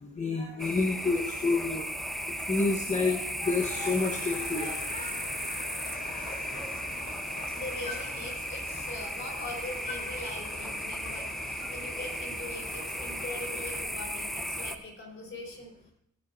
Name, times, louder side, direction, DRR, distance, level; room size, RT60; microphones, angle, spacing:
voice 1, 0.0-1.8 2.5-5.1, left 3 dB, 25° left, 0 dB, 1.3 m, -29 dB
sound 1, 0.6-14.8, equal, ahead, 1.0 m, -36 dB
sound 2, 3.4-13.8, left 3 dB, 60° left, 3.6 m, -45 dB
voice 2, 7.5-15.9, left 2 dB, 40° left, 0 dB, 4.1 m, -42 dB
18.5 x 10.5 x 2.7 m, 0.78 s
cardioid pair, 90°, 30 cm